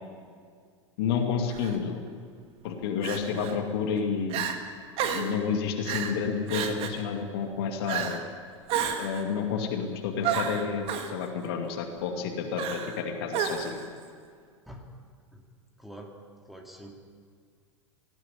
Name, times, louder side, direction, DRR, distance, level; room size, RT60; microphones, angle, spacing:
voice 1, 1.0-2.0 2.6-4.5 5.0-8.2 9.0-13.8, left 6 dB, 50° left, 4 dB, 2.4 m, -30 dB
Crying sobbing, 1.5-1.8 3.0-3.5 4.0-4.1 4.3-4.6 5.0-5.4 5.8-6.2 6.5-7.0 7.9-8.2 8.7-9.2 10.2-11.1 12.6-13.0 13.3-13.8, right 8 dB, 35° right, 1.9 m, -31 dB
voice 2, 15.8-16.1 16.4-16.9, equal, ahead, 1 dB, 2.7 m, -46 dB
19.0 x 15.0 x 10.0 m, 2.1 s
figure-of-eight pair, 90°, 16 cm